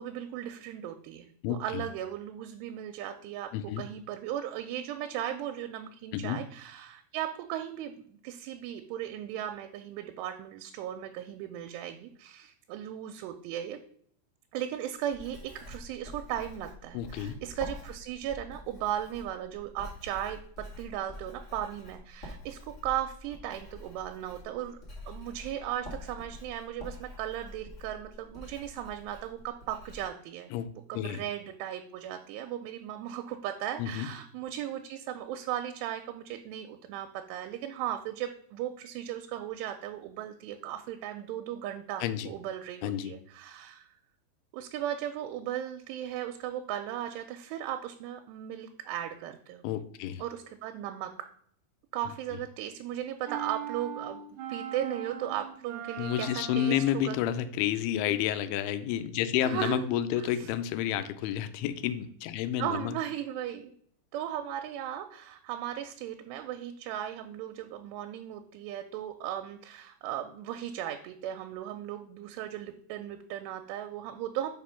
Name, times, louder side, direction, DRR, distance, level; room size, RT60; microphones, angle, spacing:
voice 1, 0.0-13.8 14.5-24.8 25.0-30.5 30.9-43.9 44.5-49.6 50.2-51.1 51.9-54.2 54.5-57.2 59.4-59.8 60.2-60.5 62.6-63.7 64.1-74.5, right 11 dB, 90° right, 6 dB, 2.7 m, -37 dB
voice 2, 1.4-1.8 3.5-3.8 6.1-6.4 16.9-17.4 30.5-31.2 33.8-34.1 42.0-42.3 42.8-43.1 49.6-50.2 56.0-63.0, left 11 dB, 80° left, 11 dB, 2.3 m, -30 dB
Writing, 15.0-30.1, left 1 dB, 60° left, 0.7 m, -46 dB
sound 1, 53.3-57.2, right 9 dB, 70° right, 2.1 m, -40 dB
5.4 x 5.1 x 5.6 m, 0.63 s
omnidirectional pair, 4.7 m